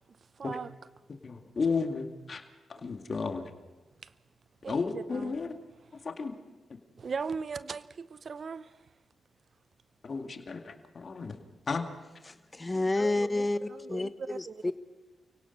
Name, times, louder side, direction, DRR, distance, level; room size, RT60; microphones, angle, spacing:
voice 1, 0.4-0.7 4.0-4.1 4.6-5.4 7.0-8.8 13.7-14.7, right 5 dB, 55° right, 0.6 m, -38 dB
voice 2, 1.2-2.4 2.7-3.5 4.7-5.5 6.0-6.3 10.0-11.4 11.7-11.9, left 4 dB, 55° left, 2.2 m, -33 dB
voice 3, 12.3-14.7, left 2 dB, 25° left, 1.1 m, -30 dB
28.5 x 17.5 x 5.5 m
supercardioid pair, 40°, 0 cm